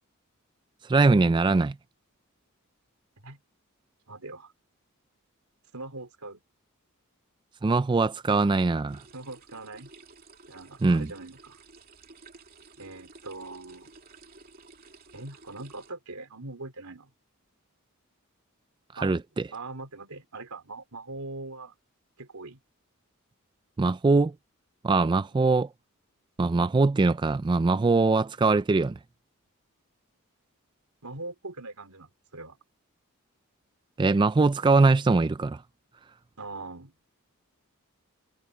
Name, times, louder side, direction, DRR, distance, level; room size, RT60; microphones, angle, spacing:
voice 1, 0.8-1.8 7.6-9.0 10.8-11.1 18.9-19.5 23.8-24.3 24.8-25.7 26.4-29.0 34.0-35.6, right 3 dB, 20° right, 0.3 m, -22 dB
voice 2, 4.1-4.5 5.7-6.4 9.1-9.9 10.5-11.6 12.8-13.9 15.1-17.1 19.0-19.1 19.5-21.7 22.2-22.6 31.0-32.6 36.4-36.9, right 2 dB, 85° right, 3.5 m, -41 dB
sound 1, 8.9-15.9, right 3 dB, 45° right, 2.7 m, -53 dB
head